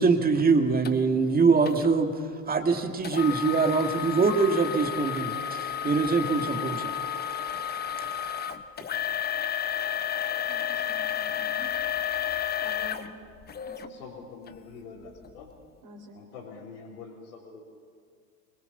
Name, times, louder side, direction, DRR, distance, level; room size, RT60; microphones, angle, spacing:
voice 1, 0.0-6.9, right 4 dB, 20° right, 6 dB, 2.0 m, -24 dB
sound 1, 0.8-0.9 1.7-1.9 3.0-13.9 14.5-14.6 15.2-15.3, left 9 dB, 20° left, 1.0 m, -31 dB
voice 2, 10.5-11.7 12.6-13.2 13.7-14.0 15.8-16.2, left 1 dB, 40° right, 1 dB, 3.7 m, -48 dB
voice 3, 13.9-15.5 16.1-17.6, left 5 dB, 70° left, -7 dB, 3.9 m, -45 dB
25.0 x 21.0 x 7.0 m, 2.1 s
figure-of-eight pair, 85°, 47 cm